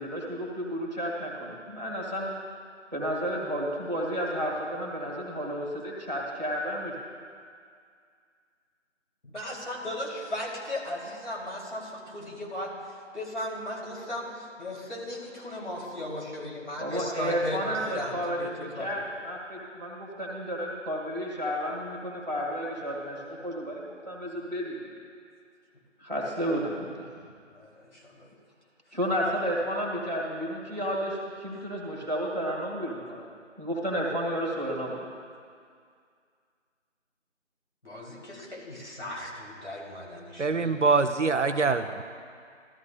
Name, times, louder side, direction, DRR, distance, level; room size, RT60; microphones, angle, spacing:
voice 1, 0.0-2.3 2.9-6.9 16.8-24.8 26.0-27.1 28.9-33.3 33.6-35.0, equal, 35° right, -4 dB, 1.6 m, -32 dB
voice 2, 9.2-18.9 27.5-28.3 37.8-40.8, left 1 dB, 65° left, -3 dB, 2.7 m, -37 dB
voice 3, 40.4-42.0, right 4 dB, 70° right, 9 dB, 0.6 m, -24 dB
14.0 x 13.0 x 2.2 m, 2.2 s
figure-of-eight pair, 180°, 37 cm